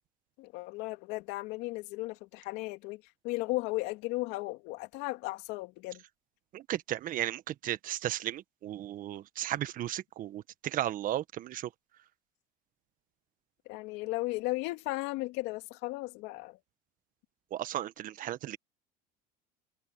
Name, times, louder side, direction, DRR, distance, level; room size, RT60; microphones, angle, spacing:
voice 1, 0.4-6.0 13.7-16.6, left 21 dB, 70° left, 2.6 m, -35 dB
voice 2, 6.5-11.7 17.5-18.6, right 12 dB, 50° right, 1.4 m, -35 dB
supercardioid pair, 105°, 18 cm